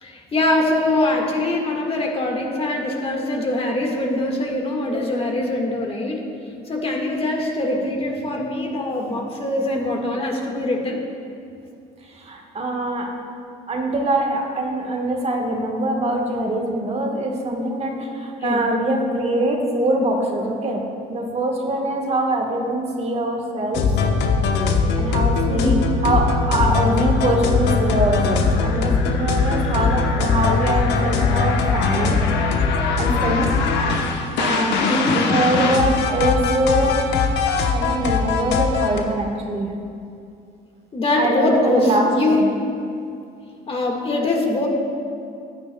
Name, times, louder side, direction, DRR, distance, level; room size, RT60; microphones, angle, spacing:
voice 1, 0.0-6.2 6.7-11.0 18.4-18.6 20.4-20.6 25.5-25.8 34.8-35.2 40.9-42.4 43.7-44.7, left 2 dB, 30° left, 1 dB, 1.7 m, -23 dB
voice 2, 12.2-13.1 13.7-20.8 21.1-23.8 25.0-25.7 26.0-32.2 33.0-33.5 34.4-34.8 35.1-37.0 37.7-39.7 41.2-42.4, right 1 dB, 35° right, 2 dB, 1.4 m, -23 dB
sound 1, 23.7-39.0, left 4 dB, 70° left, 1.0 m, -20 dB
15.0 x 9.5 x 2.3 m, 2.5 s
supercardioid pair, 80°, 18 cm